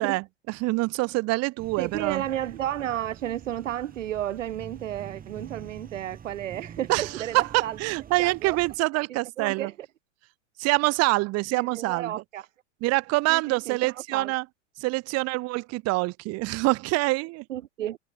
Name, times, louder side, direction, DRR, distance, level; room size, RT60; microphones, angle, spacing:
voice 1, 0.0-2.2 6.9-7.1 7.5-9.7 10.6-12.2 12.8-14.4 14.8-17.4, right 23 dB, 40° right, 2.0 m, -26 dB
sound 1, 1.6-8.8, right 8 dB, 25° right, 6.5 m, -46 dB
voice 2, 1.8-7.8 8.2-8.6 9.4-9.7 11.5-12.5 13.3-14.3 17.5-18.0, right 12 dB, 80° right, 1.2 m, -32 dB
hypercardioid pair, 110°, 37 cm